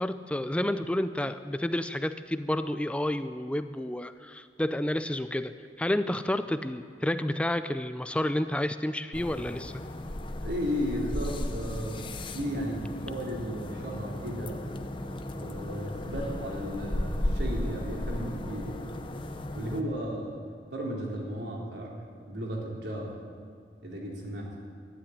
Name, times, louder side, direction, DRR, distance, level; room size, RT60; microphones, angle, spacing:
voice 1, 0.0-9.7, left 1 dB, 5° left, 11 dB, 0.4 m, -30 dB
sound 1, 9.1-19.8, left 1 dB, 25° left, 0.8 m, -35 dB
voice 2, 10.4-14.7 15.3-18.9 19.5-20.4 20.7-23.2 23.8-24.6, equal, 70° right, -2 dB, 3.5 m, -35 dB
12.5 x 10.5 x 9.9 m, 2.1 s
head